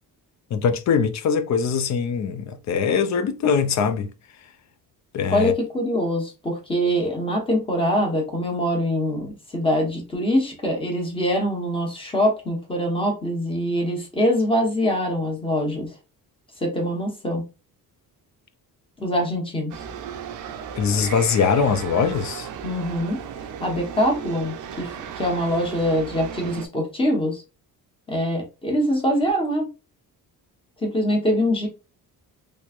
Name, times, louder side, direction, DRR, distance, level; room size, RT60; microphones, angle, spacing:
voice 1, 0.5-4.1 5.1-5.5 20.8-22.5, left 6 dB, 50° left, 0.5 m, -22 dB
voice 2, 5.3-15.9 16.6-17.4 19.0-19.7 22.6-23.2 23.6-27.4 28.1-29.7 30.8-31.7, equal, 15° left, 1.0 m, -23 dB
sound 1, 19.7-26.7, right 7 dB, 55° right, 0.5 m, -35 dB
3.3 x 3.1 x 2.4 m
cardioid pair, 170°, 37 cm